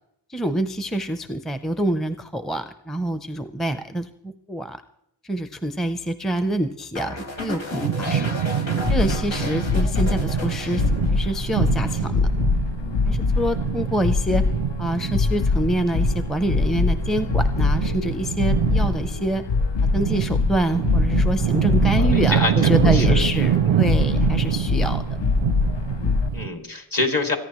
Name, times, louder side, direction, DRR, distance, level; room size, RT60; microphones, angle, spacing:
voice 1, 0.3-4.8 5.2-8.3 8.9-10.8 11.1-12.3 13.1-14.4 14.8-19.4 19.9-25.0 26.0-26.2, right 1 dB, ahead, 10 dB, 0.6 m, -26 dB
sound 1, 6.9-11.4 11.7-12.1, left 3 dB, 85° left, 2.3 m, -33 dB
sound 2, 7.7-26.5, right 10 dB, 90° right, 0.5 m, -25 dB
sound 3, 8.8-26.3, left 4 dB, 70° left, 0.7 m, -24 dB
voice 2, 21.9-22.5 22.9-23.2 23.5-23.8 26.3-27.4, left 2 dB, 45° left, 3 dB, 2.5 m, -26 dB
28.0 x 10.0 x 3.1 m, 0.74 s
wide cardioid pair, 60°, 46 cm